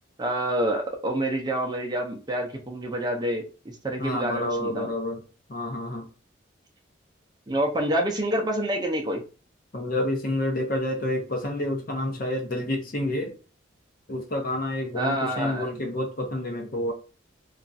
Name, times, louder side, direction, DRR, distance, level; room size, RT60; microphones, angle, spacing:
voice 1, 0.2-4.9 7.5-9.2 14.9-15.7, right 1 dB, 20° right, 0.5 m, -27 dB
voice 2, 4.0-5.2 5.5-6.1 9.7-13.4 14.1-16.9, left 1 dB, 50° left, 0.7 m, -29 dB
3.0 x 2.4 x 2.6 m
head